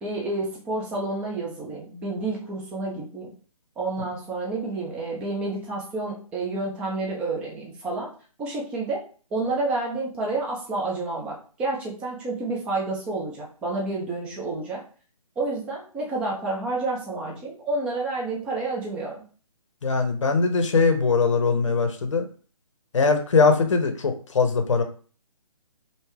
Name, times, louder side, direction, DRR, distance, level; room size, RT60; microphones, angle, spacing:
voice 1, 0.0-3.3 3.8-8.1 8.4-9.0 9.3-14.8 15.4-19.2, right 2 dB, 5° right, -3 dB, 0.4 m, -29 dB
voice 2, 19.8-22.3 22.9-24.8, left 4 dB, 55° left, 6 dB, 0.7 m, -21 dB
3.2 x 2.7 x 3.3 m, 0.40 s
figure-of-eight pair, 140°, 19 cm